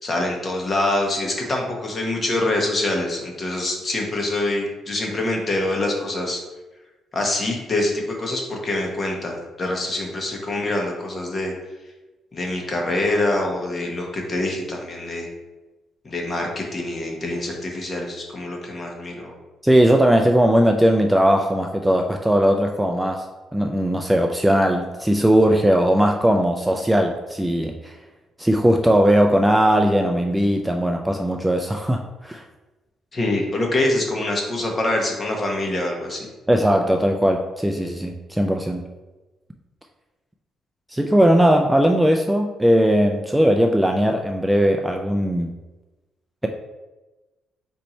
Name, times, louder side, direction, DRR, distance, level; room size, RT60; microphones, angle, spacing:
voice 1, 0.0-6.4 7.1-11.5 12.3-15.3 16.0-19.3 33.1-36.3, left 2 dB, 35° left, 0 dB, 1.1 m, -25 dB
voice 2, 19.6-23.2 23.5-27.9 28.4-32.4 36.5-38.8 40.9-45.5, equal, 5° right, 3 dB, 0.3 m, -19 dB
4.3 x 2.7 x 4.3 m, 1.1 s
cardioid pair, 90°, 0 cm